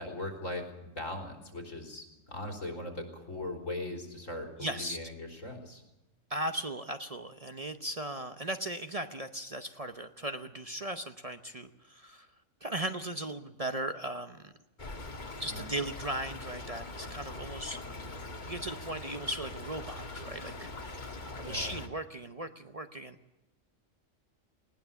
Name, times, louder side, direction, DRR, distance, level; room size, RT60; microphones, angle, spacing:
voice 1, 0.0-5.8 15.5-15.7 21.4-21.8, left 1 dB, 85° left, 6 dB, 4.0 m, -40 dB
voice 2, 4.6-5.0 6.3-12.3 12.6-14.5 15.4-17.8 18.5-20.7 21.4-23.2, right 1 dB, 35° right, 8 dB, 0.8 m, -37 dB
Stream / Trickle dribble, 14.8-21.9, left 2 dB, 35° left, 1.6 m, -42 dB
20.0 x 18.5 x 7.0 m, 0.96 s
omnidirectional pair, 1.3 m